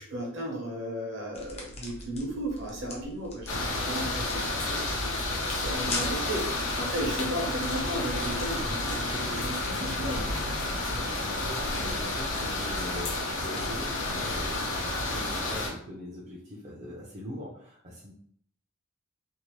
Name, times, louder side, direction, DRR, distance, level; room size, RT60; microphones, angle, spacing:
voice 1, 0.0-10.2, right 1 dB, 65° right, -1 dB, 1.0 m, -35 dB
sound 1, 1.3-8.7, left 2 dB, 30° left, 0.6 m, -42 dB
sound 2, 3.5-15.7, left 2 dB, 75° left, 0.7 m, -31 dB
voice 2, 10.9-18.1, left 1 dB, 35° right, -5 dB, 0.5 m, -42 dB
2.7 x 2.1 x 3.0 m, 0.62 s
head